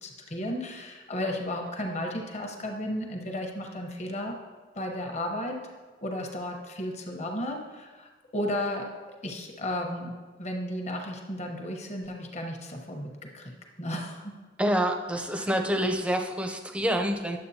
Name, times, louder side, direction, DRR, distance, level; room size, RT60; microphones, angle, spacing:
voice 1, 0.0-4.4 4.7-5.6 6.0-8.9 9.2-13.5 13.8-14.3 15.3-15.5, left 1 dB, 40° left, 2 dB, 1.0 m, -34 dB
voice 2, 14.6-17.4, equal, 5° right, 4 dB, 0.5 m, -27 dB
10.5 x 7.3 x 2.8 m, 1.3 s
head